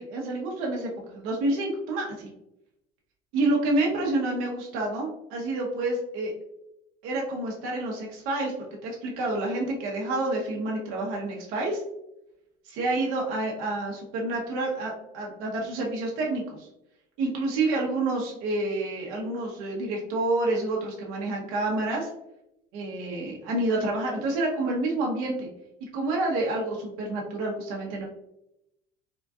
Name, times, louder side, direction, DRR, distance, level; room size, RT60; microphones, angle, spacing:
voice 1, 0.0-2.3 3.3-6.3 7.0-8.5 8.8-11.8 12.6-16.7 17.2-22.1 22.7-25.5 25.9-28.1, right 2 dB, 80° right, -2 dB, 0.8 m, -28 dB
3.7 x 2.5 x 2.3 m, 0.84 s
cardioid pair, 125°, 21 cm